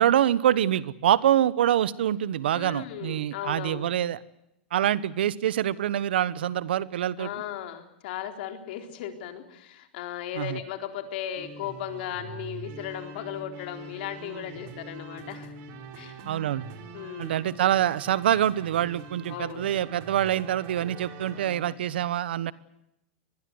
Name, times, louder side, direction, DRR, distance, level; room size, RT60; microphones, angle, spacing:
voice 1, 0.0-4.2 4.7-7.3 10.3-10.6 16.3-16.7 17.2-22.5, right 11 dB, 80° right, 18 dB, 1.1 m, -25 dB
voice 2, 2.5-3.9 7.2-15.5 15.9-16.2 16.9-17.4 19.3-19.7, left 11 dB, 65° left, 6 dB, 4.0 m, -36 dB
sound 1, 11.4-21.8, right 4 dB, 45° right, 4.9 m, -44 dB
24.5 x 20.5 x 7.9 m, 0.83 s
hypercardioid pair, 120°, 6 cm